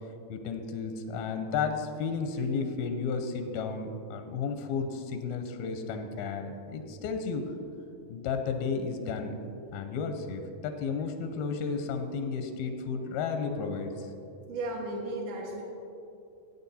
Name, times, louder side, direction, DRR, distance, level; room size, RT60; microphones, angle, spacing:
voice 1, 0.3-7.5 8.1-9.4 9.7-14.1, left 5 dB, 90° left, 6 dB, 2.6 m, -33 dB
voice 2, 14.5-15.7, right 2 dB, 85° right, -4 dB, 3.2 m, -35 dB
15.5 x 8.6 x 4.2 m, 2.7 s
omnidirectional pair, 4.2 m